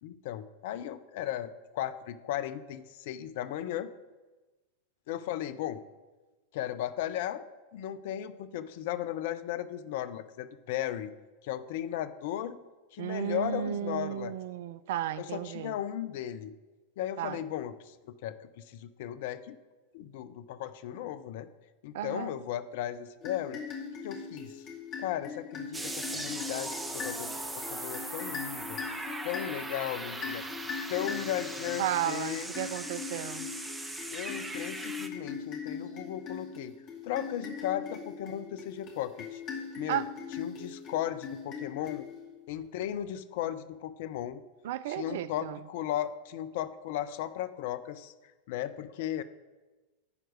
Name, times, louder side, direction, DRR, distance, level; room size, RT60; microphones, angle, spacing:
voice 1, 0.0-3.9 5.1-5.8 6.5-7.4 7.7-11.1 11.4-12.6 12.9-14.3 15.2-16.5 17.0-17.9 18.2-19.6 19.9-21.5 21.8-23.6 24.0-24.6 25.0-28.8 29.2-30.4 30.9-32.5 34.1-36.8 37.0-39.4 39.8-40.0 40.4-42.1 42.5-44.4 44.9-48.1 48.5-49.2, left 11 dB, 50° left, 0.5 m, -36 dB
voice 2, 13.0-15.8 17.2-17.4 21.9-22.4 31.8-33.5 39.9-40.1 44.6-45.6, right 11 dB, 55° right, 0.4 m, -34 dB
sound 1, 23.2-42.4, left 6 dB, 35° left, 2.3 m, -41 dB
sound 2, 25.7-35.1, right 2 dB, 10° right, 0.7 m, -39 dB
11.0 x 4.6 x 6.3 m
figure-of-eight pair, 90°, 0 cm